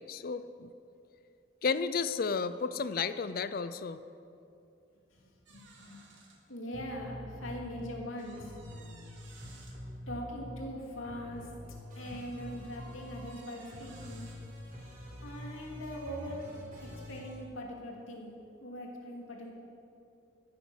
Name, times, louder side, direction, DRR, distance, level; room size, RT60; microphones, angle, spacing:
voice 1, 0.1-0.7 1.6-4.0, left 5 dB, 45° left, 13 dB, 0.4 m, -32 dB
voice 2, 5.1-6.0 6.5-8.6 10.1-11.5 11.9-14.3 15.2-16.4 16.8-18.3 18.6-19.5, equal, 85° left, -1 dB, 2.8 m, -42 dB
sound 1, 5.5-6.4 7.0-7.1 8.2-9.8 11.2-12.0 12.7-14.4 15.4-16.8 17.3-17.4 17.7-17.9, right 3 dB, 65° right, 2.2 m, -58 dB
sound 2, 6.7-7.9 8.3-10.8 11.0-17.4, equal, 45° right, 3.8 m, -46 dB
15.0 x 10.5 x 6.2 m, 2.6 s
head